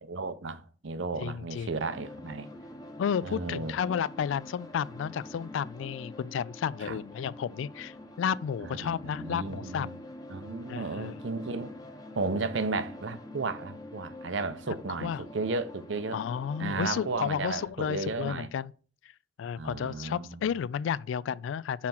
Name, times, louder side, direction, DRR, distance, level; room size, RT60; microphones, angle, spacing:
voice 1, 0.0-2.5 3.2-3.7 6.8-7.0 8.6-10.0 10.3-11.7 12.1-16.2 16.6-18.5 19.6-20.4, right 3 dB, 75° right, 0.7 m, -34 dB
voice 2, 1.2-1.9 3.0-9.9 10.7-11.2 15.0-15.2 16.1-18.7 19.4-21.9, left 7 dB, 80° left, 0.3 m, -32 dB
sound 1, 1.9-17.7, left 1 dB, 20° left, 0.8 m, -46 dB
5.7 x 4.3 x 6.1 m
head